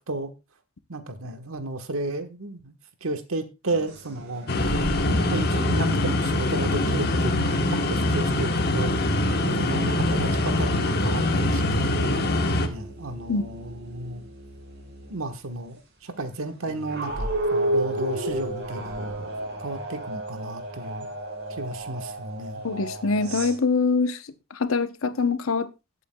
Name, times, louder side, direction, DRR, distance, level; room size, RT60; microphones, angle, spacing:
voice 1, 0.9-2.7 3.0-4.7 5.1-9.0 9.5-12.0 12.6-14.2 15.1-19.2 19.6-21.1 21.5-22.6, right 2 dB, 90° right, 1.3 m, -33 dB
sound 1, 3.7-6.0 7.1-8.1 8.9-15.3 16.3-23.6, right 1 dB, 55° right, 4.3 m, -34 dB
sound 2, 4.5-12.7, left 1 dB, 50° left, 1.2 m, -23 dB
voice 2, 22.6-24.2 24.5-25.7, left 4 dB, 80° left, 0.8 m, -24 dB
18.5 x 8.4 x 2.3 m
head